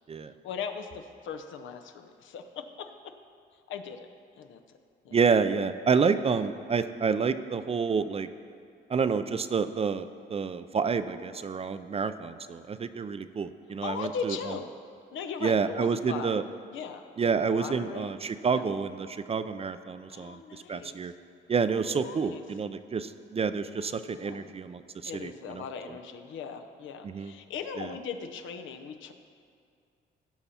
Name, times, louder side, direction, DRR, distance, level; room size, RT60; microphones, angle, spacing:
voice 1, 0.4-3.1 3.7-4.1 4.4-4.6 5.0-5.1 13.8-14.7 15.1-16.4 16.7-17.0 17.5-18.1 18.5-18.6 20.1-21.1 21.7-22.4 23.8-24.5 25.0-29.1, left 6 dB, 75° left, 6 dB, 0.8 m, -39 dB
voice 2, 5.1-8.3 8.9-14.4 15.4-16.4 17.2-21.1 21.5-25.6 27.0-27.3 27.8-27.9, right 5 dB, 30° right, 12 dB, 0.4 m, -29 dB
16.0 x 5.7 x 4.3 m, 2.3 s
cardioid pair, 90°, 20 cm